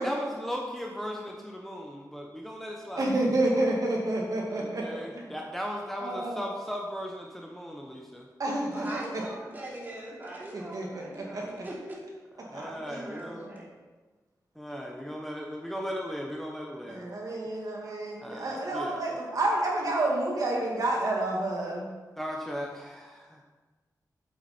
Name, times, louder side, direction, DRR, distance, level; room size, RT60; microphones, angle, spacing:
voice 1, 0.0-3.1 4.5-8.3 12.4-13.5 14.5-17.1 18.2-19.0 22.2-23.4, equal, 5° left, 0 dB, 0.9 m, -37 dB
voice 2, 3.0-5.3 6.0-6.4 8.4-8.9 10.5-11.6 12.5-12.6 12.9-13.6 16.9-21.9, right 2 dB, 60° right, -2 dB, 2.2 m, -29 dB
voice 3, 8.7-12.0 12.6-13.7, right 1 dB, 25° right, -5 dB, 2.8 m, -41 dB
8.2 x 7.9 x 4.4 m, 1.3 s
wide cardioid pair, 120°, 7 cm